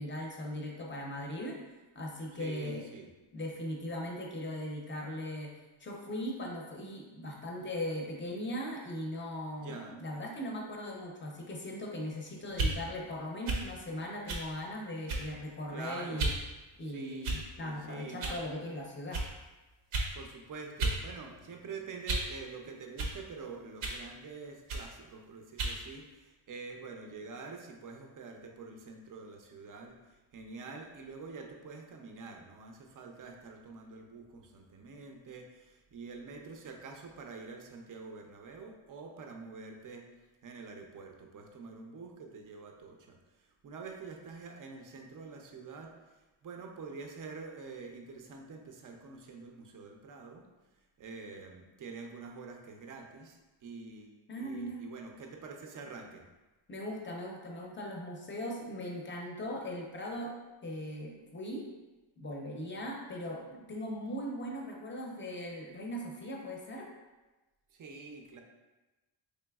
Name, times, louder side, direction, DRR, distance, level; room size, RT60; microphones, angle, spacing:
voice 1, 0.0-1.6 1.9-2.8 3.3-5.5 5.8-16.3 16.8-19.2 54.3-54.8 56.7-60.3 60.6-61.7 62.2-66.9, left 1 dB, 25° left, -1 dB, 0.6 m, -39 dB
voice 2, 2.3-3.1 9.6-10.0 15.7-16.3 16.9-17.3 17.6-18.4 20.1-40.1 40.4-50.5 51.0-56.2 67.7-68.4, right 4 dB, 40° right, 3 dB, 0.5 m, -46 dB
sound 1, 12.5-12.8 13.5-13.7 14.3-14.5 15.1-15.4 16.2-16.4 17.2-17.6 18.2-18.4 19.1-19.3 19.9-20.1 20.8-21.0 21.4-22.3 23.0-23.2 23.8-24.0 24.7-24.9 25.6-25.8, right 2 dB, 85° right, 0.7 m, -33 dB
4.0 x 3.3 x 2.3 m, 1.1 s
cardioid pair, 135°, 49 cm